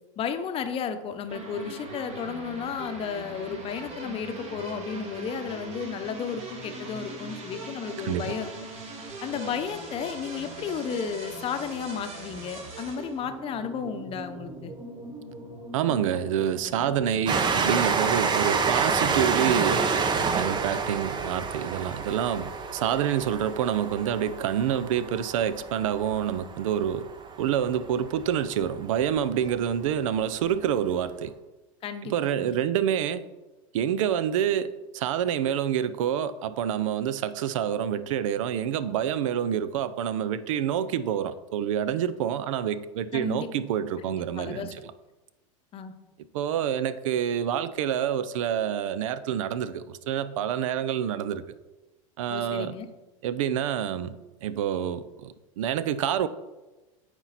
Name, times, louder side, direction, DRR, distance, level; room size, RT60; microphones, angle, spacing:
voice 1, 0.2-8.5 9.2-14.7 31.8-32.6 43.1-43.5 44.0-44.7 45.7-45.9 52.3-52.9, left 7 dB, 35° left, 0.8 m, -33 dB
sound 1, 1.3-18.2, right 2 dB, 45° right, 2.2 m, -41 dB
voice 2, 15.7-19.9 20.2-27.0 27.4-31.3 32.0-33.2 33.7-44.7 46.3-51.4 52.2-52.7 53.2-56.3, right 9 dB, 75° right, 0.6 m, -27 dB
Train, 17.3-28.4 29.2-29.3 29.5-29.6, right 5 dB, 25° right, 0.8 m, -28 dB
9.0 x 4.5 x 4.1 m
hypercardioid pair, 105°, 17 cm